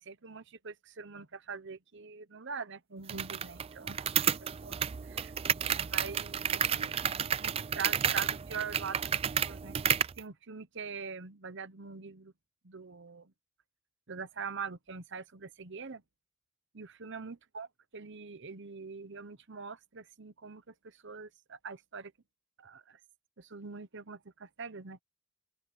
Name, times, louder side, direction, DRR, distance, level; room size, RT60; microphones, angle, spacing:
voice 1, 0.0-5.3 5.7-7.0 7.4-12.3 12.6-13.3 14.1-16.0 16.7-17.7 17.9-22.1 22.6-23.0 23.4-25.0, right 5 dB, 55° right, 1.0 m, -43 dB
sound 1, 3.1-10.2, right 8 dB, 25° right, 0.3 m, -31 dB
open air
head